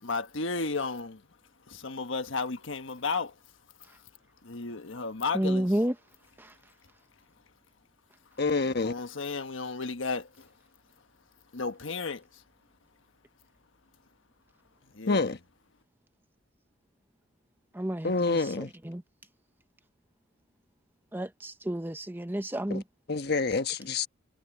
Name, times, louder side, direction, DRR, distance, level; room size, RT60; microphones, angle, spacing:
voice 1, 0.0-1.2 1.7-3.4 3.8-4.0 4.4-5.8 8.8-10.5 11.5-12.4 14.9-15.4, left 4 dB, 70° left, 1.4 m, -34 dB
voice 2, 5.3-5.9 17.7-19.0 21.1-22.8, right 1 dB, 10° right, 0.9 m, -31 dB
voice 3, 8.4-8.9 15.1-15.4 18.0-18.7 22.7-22.8 23.1-24.1, left 3 dB, 55° left, 1.3 m, -27 dB
head